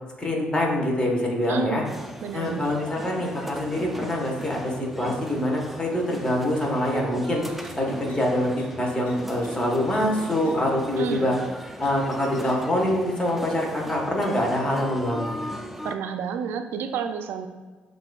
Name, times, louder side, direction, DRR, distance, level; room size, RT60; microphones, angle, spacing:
voice 1, 0.2-1.8 2.3-7.4 7.7-11.4 11.8-15.4, left 1 dB, 25° left, -1 dB, 1.2 m, -25 dB
voice 2, 1.5-1.9 2.2-2.8 11.0-11.3 15.8-17.5, right 7 dB, 80° right, 7 dB, 0.3 m, -30 dB
sound 1, 1.8-15.9, equal, 5° right, 0.4 m, -38 dB
sound 2, 7.6-7.7 8.1-8.2 8.6-8.7 9.1-9.2 9.4-9.5 9.9-10.0 10.4-10.5 11.8-11.9 12.4-12.5, left 3 dB, 80° left, 1.0 m, -50 dB
7.4 x 2.5 x 2.3 m, 1.3 s
supercardioid pair, 65°, 4 cm